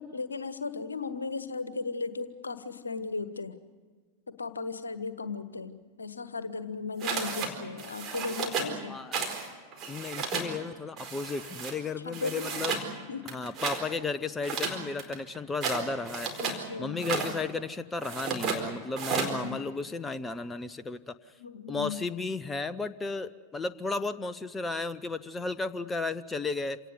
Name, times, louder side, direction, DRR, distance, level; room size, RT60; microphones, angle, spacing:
voice 1, 0.0-3.5 4.3-9.0 12.0-12.7 13.1-13.4 16.4-17.0 19.0-19.7 21.4-22.0, left 4 dB, 75° left, 12 dB, 1.3 m, -36 dB
sound 1, 7.0-7.5 7.8-8.7 9.1-9.5 9.7-10.5 11.0-11.7 12.1-12.9 13.2-13.8 14.4-16.6 16.9-17.3 18.0-18.6 19.0-19.3, right 5 dB, 30° right, 4.4 m, -33 dB
voice 2, 9.9-12.7 13.3-16.3 16.8-21.2 21.7-26.8, left 3 dB, 15° left, 13 dB, 0.8 m, -34 dB
27.5 x 18.5 x 8.2 m, 1.5 s
figure-of-eight pair, 90°, 0 cm